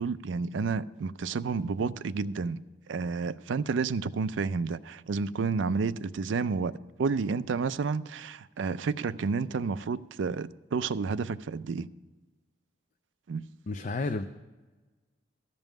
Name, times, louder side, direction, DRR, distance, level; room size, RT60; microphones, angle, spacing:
voice 1, 0.0-2.6 2.9-6.7 7.0-11.9 13.3-13.4, right 4 dB, 75° right, 0.4 m, -30 dB
voice 2, 13.7-14.2, left 3 dB, 40° left, 0.5 m, -31 dB
14.0 x 5.4 x 9.1 m
head